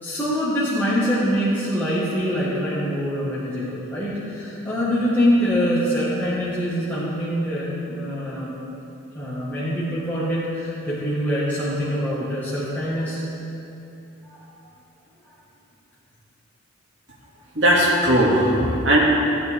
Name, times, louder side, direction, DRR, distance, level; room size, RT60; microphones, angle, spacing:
voice 1, 0.0-8.5 9.1-13.2 14.2-14.4, equal, 10° left, -10 dB, 1.6 m, -24 dB
voice 2, 17.5-19.0, right 1 dB, 65° right, -5 dB, 2.4 m, -18 dB
16.0 x 8.6 x 3.6 m, 2.8 s
head